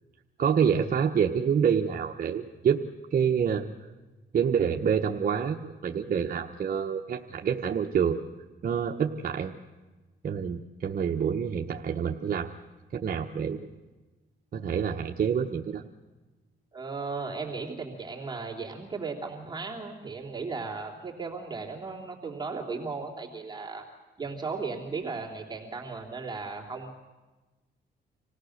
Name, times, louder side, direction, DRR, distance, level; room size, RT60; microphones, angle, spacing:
voice 1, 0.4-2.8 3.1-3.7 4.3-8.2 8.6-9.5 10.2-12.5 12.9-13.6 14.5-15.8, right 7 dB, 45° right, 2 dB, 1.0 m, -27 dB
voice 2, 16.7-23.8 24.2-26.9, right 4 dB, 20° right, -1 dB, 3.1 m, -36 dB
26.0 x 17.0 x 6.5 m, 1.2 s
cardioid pair, 90°, 20 cm